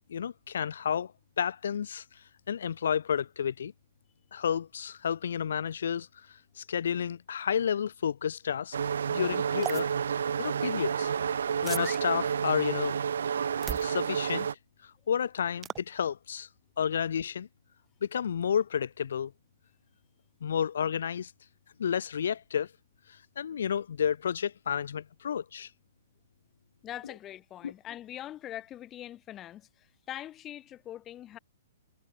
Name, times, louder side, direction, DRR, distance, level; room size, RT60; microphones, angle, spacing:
voice 1, 0.1-2.0 2.5-3.7 4.3-6.1 6.6-8.8 9.1-9.9 10.4-11.1 11.6-13.0 13.8-14.5 15.1-16.5 16.8-17.5 18.0-19.3 20.4-21.3 21.8-22.7 23.4-25.7 27.6-27.7, left 8 dB, 65° left, 1.1 m, -31 dB
sound 1, 8.7-14.5, right 7 dB, 65° right, 3.8 m, -30 dB
sound 2, 9.6-9.8 11.6-12.0 13.6-13.9 15.6-15.8, right 10 dB, 20° right, 1.0 m, -36 dB
voice 2, 26.8-31.4, left 12 dB, 25° left, 4.3 m, -43 dB
figure-of-eight pair, 115°, 0 cm